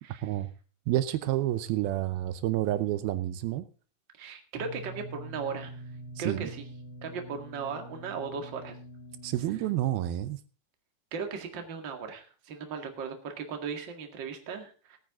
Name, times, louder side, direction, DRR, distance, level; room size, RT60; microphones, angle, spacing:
voice 1, 0.9-3.7 6.2-6.5 9.2-10.4, right 14 dB, 80° right, 12 dB, 2.6 m, -29 dB
voice 2, 4.2-5.8 6.2-6.7 7.0-8.8 11.1-15.0, right 5 dB, 40° right, 5 dB, 2.0 m, -37 dB
sound 1, 4.5-9.8, right 1 dB, 5° right, 2.0 m, -45 dB
18.0 x 9.1 x 3.7 m, 0.37 s
omnidirectional pair, 4.4 m